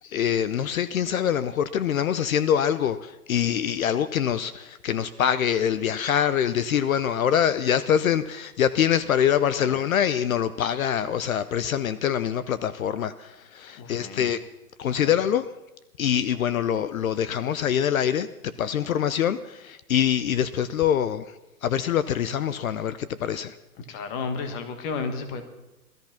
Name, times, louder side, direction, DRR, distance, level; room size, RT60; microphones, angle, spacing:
voice 1, 0.0-14.4 14.8-15.5 16.0-23.6, left 9 dB, 60° left, 15 dB, 0.8 m, -24 dB
voice 2, 13.8-14.3 14.9-15.1 23.9-25.4, left 5 dB, 20° left, 8 dB, 1.3 m, -33 dB
18.5 x 13.5 x 5.8 m, 0.97 s
hypercardioid pair, 160°, 46 cm